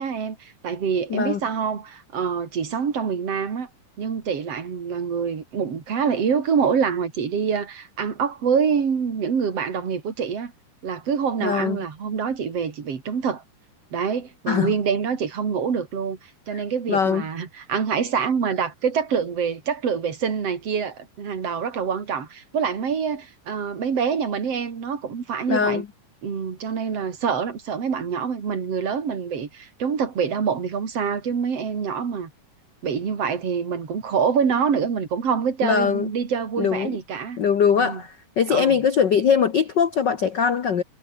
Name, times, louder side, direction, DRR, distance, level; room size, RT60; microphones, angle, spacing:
voice 1, 0.0-3.7 4.0-10.5 10.8-13.4 13.9-16.2 16.5-25.8 26.2-32.3 32.8-37.4 37.7-38.0 38.5-38.8, right 6 dB, 45° right, 3.9 m, -25 dB
voice 2, 1.1-1.4 11.4-11.8 14.5-14.7 16.5-16.6 16.9-17.2 25.5-25.9 35.6-36.1 36.6-37.0 37.4-40.8, left 7 dB, 80° left, 1.0 m, -21 dB
omnidirectional pair, 3.9 m